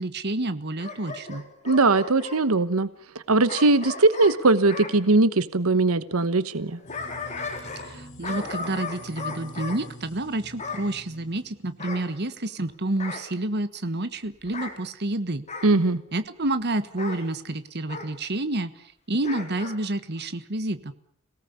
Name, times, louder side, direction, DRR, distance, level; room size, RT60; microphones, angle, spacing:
voice 1, 0.0-1.4 7.8-15.5 16.1-20.9, right 2 dB, 50° right, 12 dB, 1.3 m, -29 dB
Bark / Growling, 0.8-2.4 3.5-4.9 6.6-8.0 8.2-9.8 10.6-10.9 11.8-12.6 13.0-13.3 14.4-14.8 15.5-15.8 17.0-17.2 17.9-18.1 19.2-19.8 20.2-20.3, left 4 dB, 35° left, 4.3 m, -36 dB
voice 2, 1.6-2.9 3.3-6.8 15.6-16.0, right 3 dB, 90° right, 14 dB, 1.1 m, -20 dB
sound 1, 6.9-12.1, equal, 60° left, 5.5 m, -46 dB
27.0 x 18.0 x 8.3 m, 0.63 s
head